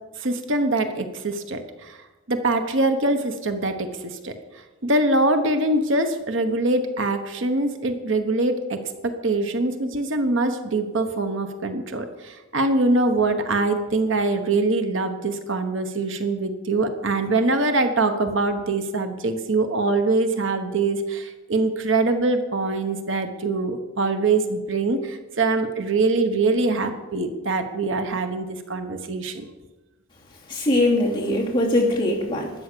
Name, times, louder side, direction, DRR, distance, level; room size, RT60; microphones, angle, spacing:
voice 1, 0.2-2.0 2.3-4.4 4.8-29.4, right 2 dB, 65° right, 7 dB, 1.1 m, -23 dB
voice 2, 30.5-32.5, left 1 dB, 20° left, -4 dB, 2.9 m, -21 dB
13.0 x 9.4 x 6.9 m, 1.1 s
head